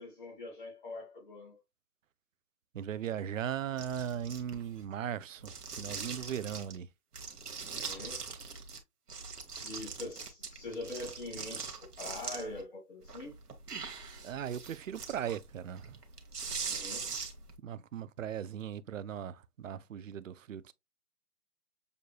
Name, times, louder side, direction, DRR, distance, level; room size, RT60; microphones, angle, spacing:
voice 1, 0.0-1.6 7.7-8.2 9.6-13.4 16.6-17.2, left 2 dB, 35° left, 1.5 m, -43 dB
voice 2, 2.7-6.9 14.2-16.0 16.7-16.9 17.6-20.7, right 9 dB, 60° right, 0.5 m, -38 dB
sound 1, 3.8-4.8 5.4-6.8 7.1-8.8 9.1-12.6 13.0-17.5, right 5 dB, 85° right, 1.3 m, -42 dB
6.7 x 2.6 x 2.3 m
hypercardioid pair, 160°, 46 cm